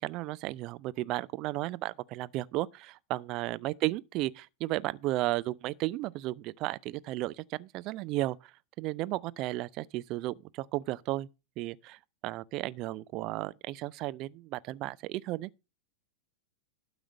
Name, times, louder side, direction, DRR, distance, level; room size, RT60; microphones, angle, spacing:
voice 1, 0.0-8.4 8.8-11.3 11.6-15.5, right 17 dB, 40° right, 0.5 m, -34 dB
12.5 x 5.0 x 6.4 m
figure-of-eight pair, 90°, 0 cm